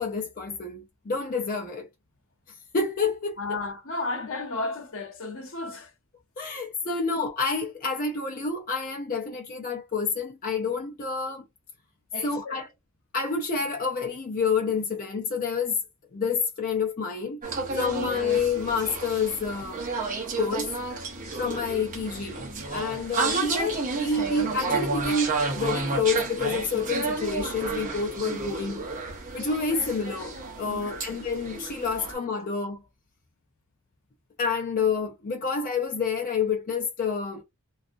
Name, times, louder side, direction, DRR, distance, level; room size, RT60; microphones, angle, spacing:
voice 1, 0.0-1.9 2.5-3.4 6.4-11.4 12.2-12.7 13.1-15.8 16.1-17.4 17.7-19.8 20.4-20.7 21.4-22.4 22.7-28.9 29.3-32.8 34.4-37.4, left 4 dB, 40° left, 0.4 m, -28 dB
voice 2, 3.4-5.9 7.0-7.1 12.1-12.7 30.7-31.0, left 2 dB, 65° left, 0.8 m, -34 dB
sound 1, 17.4-32.1, right 3 dB, 40° right, 0.8 m, -31 dB
2.6 x 2.3 x 2.5 m
head